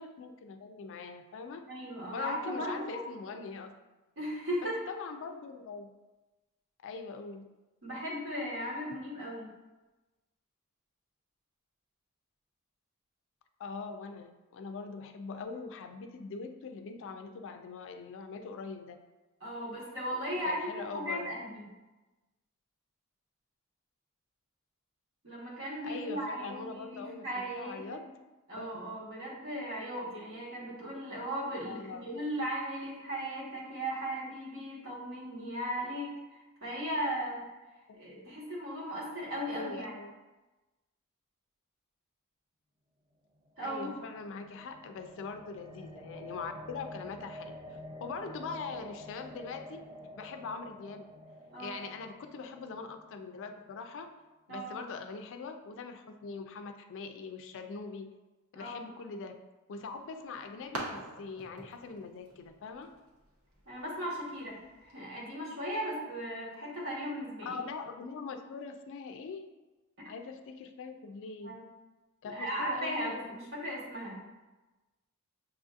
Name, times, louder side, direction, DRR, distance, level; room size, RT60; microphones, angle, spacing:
voice 1, 0.0-1.7 2.1-3.7 4.6-5.9 6.8-7.5 13.6-19.0 20.5-21.3 25.8-28.0 28.6-28.7 31.6-32.0 37.9-38.3 39.4-40.1 43.6-47.5 48.0-49.8 50.2-51.1 51.6-54.1 54.5-58.1 58.5-59.4 59.7-62.9 67.4-69.5 70.1-71.5 72.2-73.4, left 4 dB, 60° left, 7 dB, 0.4 m, -42 dB
voice 2, 1.7-3.0 4.2-4.8 7.8-9.5 19.4-21.7 25.2-28.0 28.5-37.4 37.9-39.9 43.6-43.9 51.5-51.7 54.5-54.7 58.5-58.8 63.7-67.6 70.0-70.1 71.4-71.6 72.3-74.2, equal, 65° right, -4 dB, 1.3 m, -37 dB
sound 1, 43.5-53.6, equal, 25° right, 0.4 m, -49 dB
sound 2, 59.8-64.9, right 1 dB, 80° right, 0.9 m, -46 dB
6.7 x 2.6 x 2.4 m, 1.1 s
head